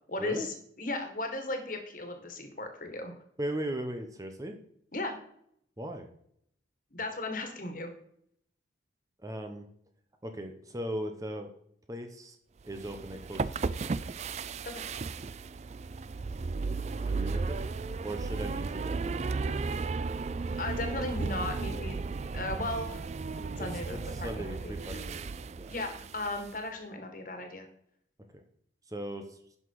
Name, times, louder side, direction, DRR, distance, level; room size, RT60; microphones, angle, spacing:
voice 1, 0.1-3.1 4.9-5.2 6.9-7.9 14.6-14.8 20.6-23.0 23.4-25.0 25.7-27.7, left 2 dB, 45° left, 6 dB, 1.8 m, -36 dB
voice 2, 3.4-4.6 5.8-6.1 9.2-9.7 10.2-11.5 11.9-12.4 12.7-14.0 16.7-17.6 18.0-19.0 23.6-25.3 25.6-25.7 28.9-29.4, right 1 dB, 20° right, 5 dB, 0.9 m, -38 dB
sound 1, 12.7-26.6, right 4 dB, 35° right, 0.3 m, -35 dB
11.0 x 6.1 x 4.8 m, 0.68 s
head